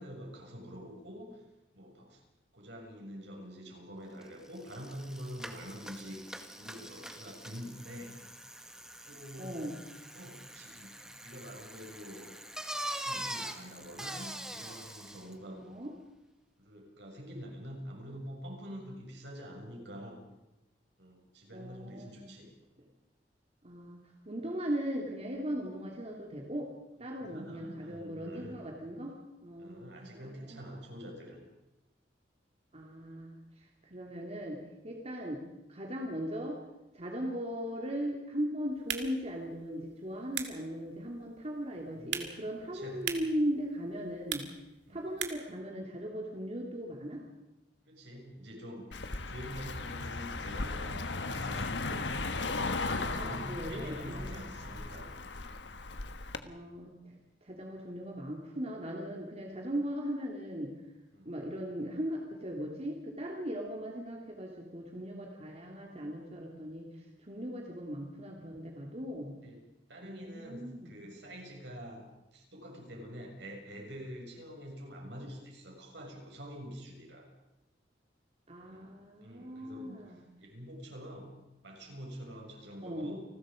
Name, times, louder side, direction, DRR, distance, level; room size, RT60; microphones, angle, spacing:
voice 1, 0.0-1.4 1.7-2.2 2.5-6.2 6.5-8.2 8.5-8.6 9.0-9.9 10.1-12.3 13.0-15.6 16.6-20.2 21.0-22.5 22.8-22.9 27.1-28.6 29.6-31.4 41.9-43.1 44.9-45.0 47.9-55.5 59.5-59.7 61.1-61.3 69.4-69.6 69.9-72.1 72.3-77.3 78.7-81.4 81.6-83.2, equal, 70° right, 1 dB, 7.0 m, -46 dB
Bicycle, 4.2-4.3 4.5-15.3, right 1 dB, 5° right, 1.9 m, -44 dB
voice 2, 9.4-9.8 15.5-15.9 21.5-22.3 23.6-26.7 27.0-30.7 32.7-36.6 36.9-44.5 44.9-47.2 52.9-54.5 56.4-60.7 61.2-69.3 70.0-70.9 78.5-80.2 82.8-83.1, equal, 35° right, 0 dB, 2.9 m, -38 dB
sound 1, 38.7-45.6, right 8 dB, 85° right, 2.4 m, -42 dB
Car passing by, 48.9-56.4, left 3 dB, 75° left, 1.4 m, -36 dB
29.5 x 20.5 x 5.2 m, 0.97 s
head